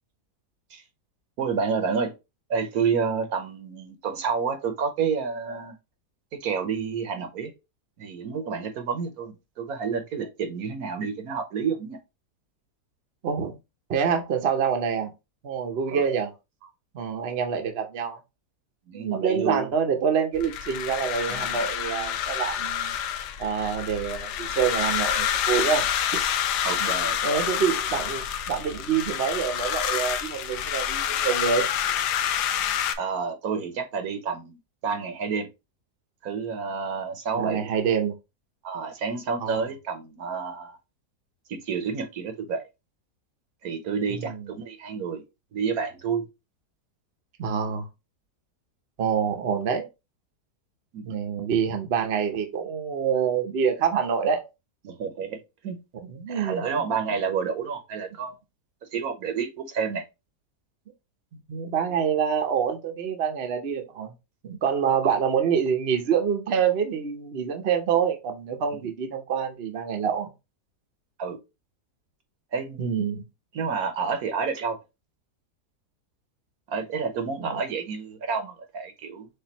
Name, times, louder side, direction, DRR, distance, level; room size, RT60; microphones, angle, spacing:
voice 1, 1.4-2.1 2.5-5.7 6.4-7.5 8.0-12.0 15.9-16.1 18.9-19.7 26.6-27.4 33.0-34.6 34.8-35.5 36.2-37.7 38.6-40.8 41.5-42.7 43.6-45.2 45.5-46.3 50.9-51.2 54.9-55.8 56.3-58.3 58.9-60.0 65.0-65.1 71.2-71.4 72.5-73.1 73.5-74.8 76.7-79.3, right 6 dB, 65° right, 1.2 m, -29 dB
voice 2, 13.2-13.5 13.9-15.1 15.4-16.3 16.9-18.2 18.9-22.9 23.4-25.9 26.1-26.2 26.8-26.9 27.2-31.7 37.4-38.1 39.4-39.6 44.1-44.4 47.4-47.9 49.0-49.9 51.0-54.4 56.0-56.7 61.5-64.1 64.4-70.3 72.8-73.2 77.4-77.6, right 7 dB, 50° right, 0.8 m, -26 dB
sound 1, 20.3-32.9, left 9 dB, 80° left, 1.2 m, -28 dB
6.6 x 2.7 x 2.9 m
omnidirectional pair, 1.8 m